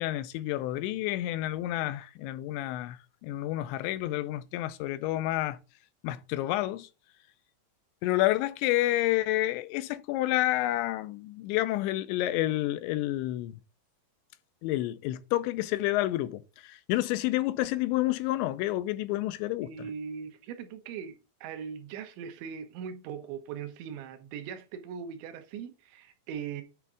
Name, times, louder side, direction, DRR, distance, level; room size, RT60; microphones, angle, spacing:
voice 1, 0.0-5.6 6.0-6.9 8.0-13.6 14.6-19.7, left 16 dB, 85° left, 2.9 m, -29 dB
voice 2, 19.6-26.6, right 7 dB, 80° right, 3.3 m, -40 dB
9.5 x 3.6 x 4.8 m
omnidirectional pair, 5.3 m